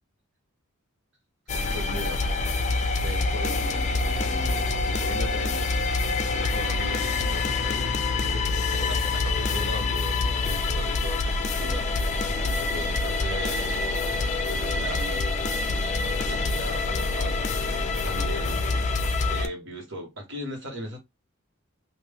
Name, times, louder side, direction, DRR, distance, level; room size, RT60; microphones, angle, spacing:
sound 1, 1.5-19.5, left 3 dB, 35° left, 0.5 m, -26 dB
voice 1, 1.7-2.2 3.0-5.8 6.3-11.8 12.4-15.2 16.0-18.9 19.3-21.0, right 1 dB, 60° right, 1.5 m, -38 dB
3.0 x 2.6 x 3.6 m
head